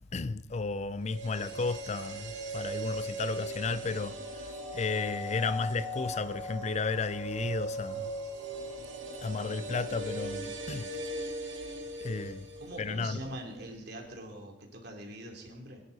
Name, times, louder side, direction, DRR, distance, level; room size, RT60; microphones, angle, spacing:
voice 1, 0.0-8.1 9.2-10.9 12.0-12.5 12.8-13.2, left 4 dB, 35° left, 0.5 m, -33 dB
sound 1, 1.0-13.1 13.4-13.5, right 1 dB, 80° right, 2.2 m, -39 dB
voice 2, 12.6-15.8, right 1 dB, 60° right, 3.0 m, -43 dB
21.0 x 11.0 x 4.1 m
head